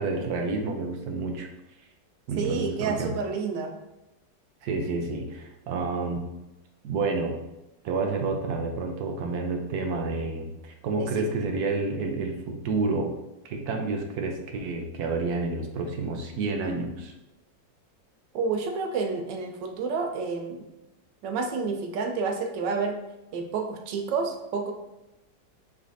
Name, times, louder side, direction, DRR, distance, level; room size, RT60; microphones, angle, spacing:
voice 1, 0.0-1.5 2.3-3.2 4.6-6.2 6.8-7.4 7.8-13.1 13.4-17.1, right 3 dB, 70° right, 3 dB, 1.1 m, -29 dB
voice 2, 2.4-3.7 11.0-11.3 18.3-20.7 21.2-23.0 23.3-24.7, right 4 dB, 85° right, 3 dB, 1.3 m, -29 dB
5.0 x 3.3 x 2.6 m, 0.95 s
omnidirectional pair, 1.9 m